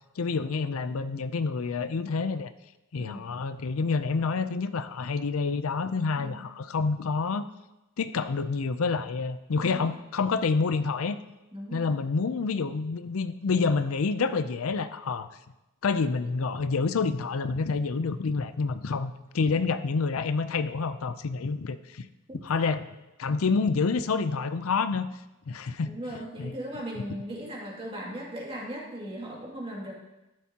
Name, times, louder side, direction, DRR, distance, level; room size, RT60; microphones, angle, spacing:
voice 1, 0.2-2.5 2.9-7.5 8.0-11.2 11.7-15.3 15.8-22.1 22.4-22.9 23.2-25.1 25.5-25.9 26.4-26.5, left 4 dB, 80° left, 12 dB, 0.5 m, -28 dB
voice 2, 6.2-6.5 9.5-9.9 11.5-11.9 22.3-22.7 25.8-29.9, right 1 dB, 25° right, -3 dB, 2.4 m, -38 dB
13.0 x 11.0 x 2.9 m, 0.98 s
head